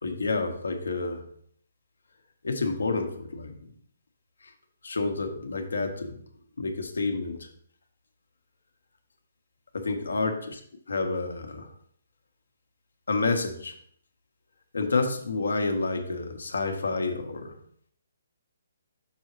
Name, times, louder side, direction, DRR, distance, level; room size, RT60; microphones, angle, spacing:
voice 1, 0.0-1.2 2.4-3.7 4.8-6.2 6.6-7.5 9.7-10.3 10.9-11.7 13.1-13.7 14.7-17.5, left 3 dB, 80° left, 5 dB, 1.2 m, -29 dB
6.5 x 6.2 x 3.1 m, 0.63 s
hypercardioid pair, 145°, 0 cm